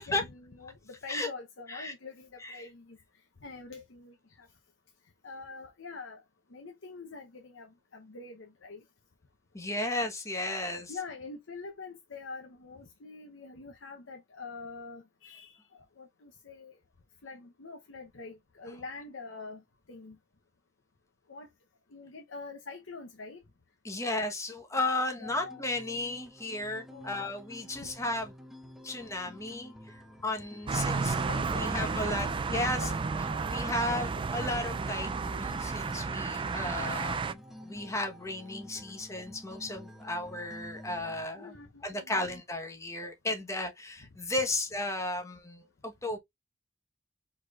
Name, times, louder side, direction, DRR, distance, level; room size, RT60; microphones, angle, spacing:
voice 1, 0.0-3.0 3.4-4.5 5.2-6.2 6.5-7.7 7.9-8.8 10.9-15.6 16.0-16.7 17.2-19.6 19.9-20.2 21.3-21.5 21.9-23.4 25.2-25.6 26.9-27.3 27.6-27.9 30.8-33.7 36.5-36.7 41.4-42.2, left 4 dB, 85° left, 0.9 m, -45 dB
voice 2, 9.5-10.9 23.8-28.3 28.8-32.9 33.4-41.5 41.8-46.2, left 2 dB, 15° left, 1.1 m, -34 dB
sound 1, 25.2-41.3, left 1 dB, ahead, 0.7 m, -50 dB
sound 2, 30.7-37.3, right 4 dB, 25° right, 0.3 m, -32 dB
4.8 x 4.3 x 2.4 m
head